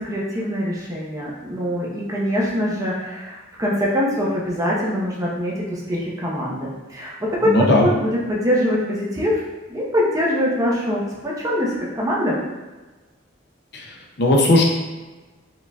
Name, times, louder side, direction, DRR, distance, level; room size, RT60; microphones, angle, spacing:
voice 1, 0.0-9.4 9.7-12.4, equal, 15° right, -5 dB, 0.8 m, -23 dB
voice 2, 7.4-7.9 13.7-13.8 14.2-14.6, left 1 dB, 55° left, 0 dB, 0.6 m, -16 dB
4.7 x 3.8 x 2.3 m, 1.2 s
head